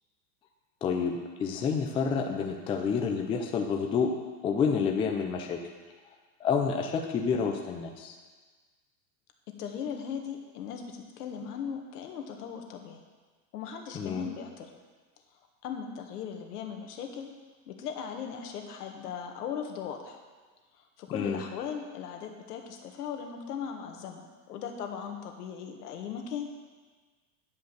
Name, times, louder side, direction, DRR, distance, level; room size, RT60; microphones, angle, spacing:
voice 1, 0.8-4.1 4.4-5.6 6.4-8.2 13.9-14.3 21.1-21.4, left 6 dB, 10° left, 3 dB, 0.4 m, -29 dB
voice 2, 9.6-13.0 13.5-14.7 15.6-17.3 17.7-20.2 20.8-26.5, left 7 dB, 65° left, 3 dB, 1.6 m, -38 dB
10.0 x 5.3 x 6.8 m, 1.4 s
hypercardioid pair, 120°, 50 cm